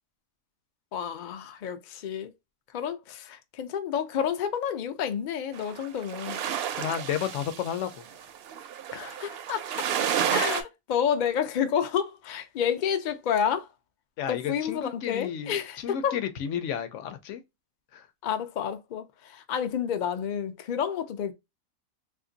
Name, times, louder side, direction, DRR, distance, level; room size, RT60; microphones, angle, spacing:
voice 1, 0.9-2.3 2.7-6.4 8.9-9.9 10.3-13.7 14.3-16.2 18.2-21.3, left 8 dB, 85° left, 0.4 m, -30 dB
sound 1, 5.5-10.6, right 9 dB, 65° right, 0.6 m, -31 dB
voice 2, 6.7-8.0 14.2-17.4 17.9-18.1, left 9 dB, 70° left, 0.8 m, -32 dB
2.5 x 2.5 x 3.8 m
omnidirectional pair, 1.5 m